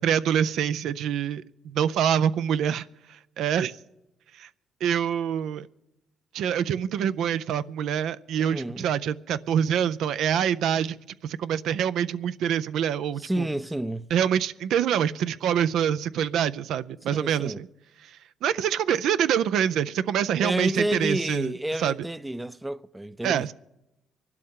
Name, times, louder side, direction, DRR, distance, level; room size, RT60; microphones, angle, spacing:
voice 1, 0.0-3.8 4.4-4.5 4.8-5.7 6.3-11.0 11.2-13.5 14.1-17.7 18.0-21.5 21.8-21.9 23.2-23.5, right 9 dB, 80° right, 0.4 m, -26 dB
voice 2, 8.4-8.9 13.2-14.1 17.1-17.6 20.4-23.5, right 1 dB, 10° right, 0.4 m, -30 dB
24.5 x 12.0 x 3.7 m
cardioid pair, 90°, 0 cm